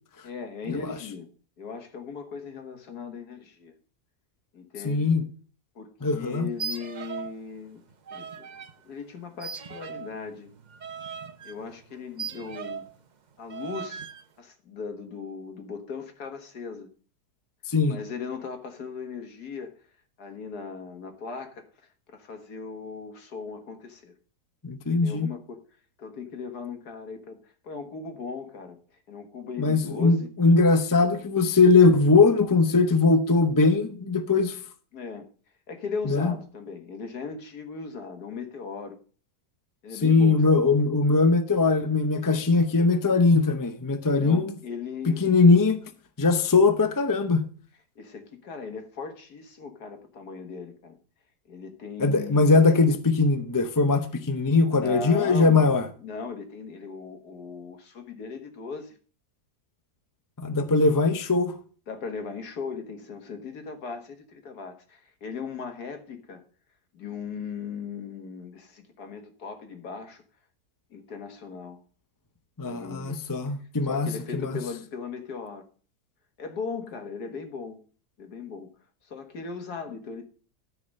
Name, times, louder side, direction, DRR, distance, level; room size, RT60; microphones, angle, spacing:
voice 1, 0.2-1.3 1.6-3.7 4.5-5.1 5.8-7.8 8.1-10.5 11.4-12.9 13.4-14.1 14.4-16.9 17.9-19.7 20.2-21.7 22.1-24.1 25.0-25.6 26.0-28.8 29.1-30.3 34.9-35.3 35.7-39.0 39.8-40.4 44.0-45.3 48.0-51.0 51.5-52.5 54.7-59.0 61.9-66.4 66.9-70.2 70.9-71.8 72.7-73.2 73.8-75.6 76.4-77.8 78.2-78.7 79.0-80.3, left 5 dB, 75° left, 2.0 m, -38 dB
voice 2, 4.8-5.2 6.0-6.5 17.7-18.0 24.6-25.3 29.6-34.6 36.1-36.3 40.0-44.5 45.1-45.8 46.2-47.4 52.0-55.9 60.4-61.5 72.6-74.5, left 3 dB, 30° left, 0.3 m, -21 dB
sound 1, 6.5-7.4 7.7-8.7 9.4-13.0 13.5-14.2, right 6 dB, 50° right, 0.5 m, -38 dB
13.5 x 4.8 x 6.5 m
omnidirectional pair, 1.7 m